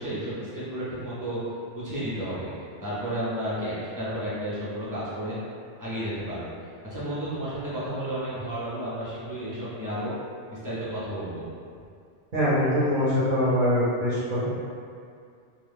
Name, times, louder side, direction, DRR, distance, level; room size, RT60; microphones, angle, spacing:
voice 1, 0.0-1.4 1.7-2.5 2.8-5.4 5.8-10.1 10.4-11.4, right 1 dB, 20° right, -11 dB, 0.7 m, -32 dB
voice 2, 12.3-14.4, equal, 45° right, -11 dB, 0.9 m, -23 dB
2.4 x 2.3 x 3.4 m, 2.3 s
omnidirectional pair, 1.2 m